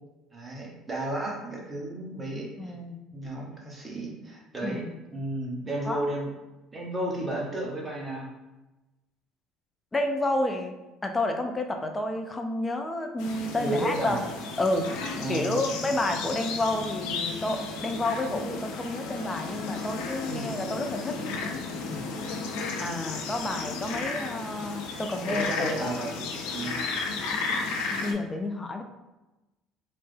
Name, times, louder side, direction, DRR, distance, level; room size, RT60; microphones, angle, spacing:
voice 1, 0.3-2.7 3.1-4.8 5.1-6.3 6.7-8.3 13.5-14.2 15.2-15.6 20.2-20.5 25.3-26.1 26.5-26.8, right 1 dB, 20° right, -2 dB, 1.0 m, -33 dB
voice 2, 2.6-3.0 4.6-4.9 5.9-6.0 9.9-10.7 11.0-14.2 14.6-21.2 21.9-22.2 22.8-25.9 27.9-28.8, left 2 dB, 20° left, 4 dB, 0.5 m, -30 dB
sound 1, 13.2-28.1, left 4 dB, 80° left, 0.5 m, -34 dB
3.3 x 2.0 x 3.3 m, 1.0 s
supercardioid pair, 85°, 0 cm